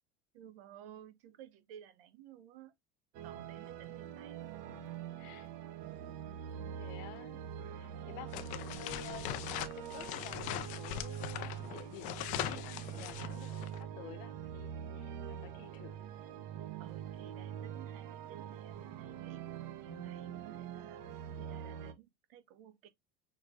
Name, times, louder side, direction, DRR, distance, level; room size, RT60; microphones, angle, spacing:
voice 1, 0.3-2.7 3.2-5.0 16.8-21.1 21.4-22.9, right 8 dB, 75° right, 1.4 m, -55 dB
sound 1, 3.1-21.9, right 9 dB, 45° right, 0.8 m, -44 dB
voice 2, 5.2-5.5 6.5-7.4 7.7-16.0, left 10 dB, 45° left, 0.8 m, -52 dB
sound 2, 8.3-13.8, left 13 dB, 25° left, 0.3 m, -41 dB
6.2 x 3.4 x 2.4 m
supercardioid pair, 180°, 29 cm